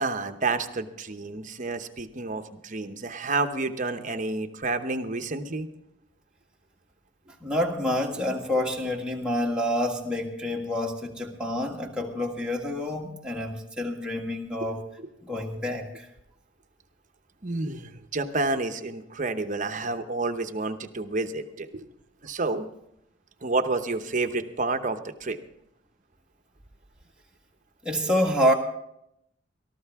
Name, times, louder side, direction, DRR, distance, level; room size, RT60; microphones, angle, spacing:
voice 1, 0.0-5.7 14.6-14.7 17.4-21.8 22.2-22.6 23.4-25.4, right 3 dB, 40° right, 8 dB, 0.9 m, -29 dB
voice 2, 7.4-14.8 15.2-16.1 27.8-28.5, left 1 dB, 5° right, -1 dB, 1.7 m, -27 dB
19.0 x 13.5 x 3.6 m, 0.78 s
head